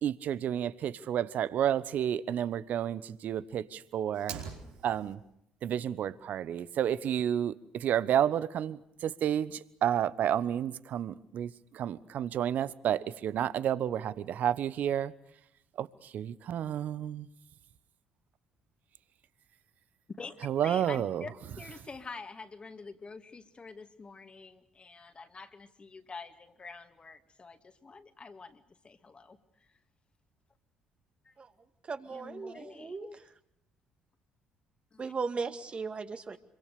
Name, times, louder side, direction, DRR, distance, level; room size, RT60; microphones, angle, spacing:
voice 1, 0.0-4.3 4.8-5.2 5.6-15.1 15.8-17.3 20.4-21.2, right 10 dB, 60° right, 1.1 m, -31 dB
Fire, 4.1-5.1, right 6 dB, 80° right, 5.0 m, -42 dB
voice 2, 20.6-29.4 31.2-31.3 32.1-33.2 34.9-35.0, left 4 dB, 35° left, 2.4 m, -47 dB
voice 3, 31.9-33.1 35.0-36.4, right 4 dB, 40° right, 2.2 m, -37 dB
26.0 x 24.0 x 6.8 m
hypercardioid pair, 50°, 3 cm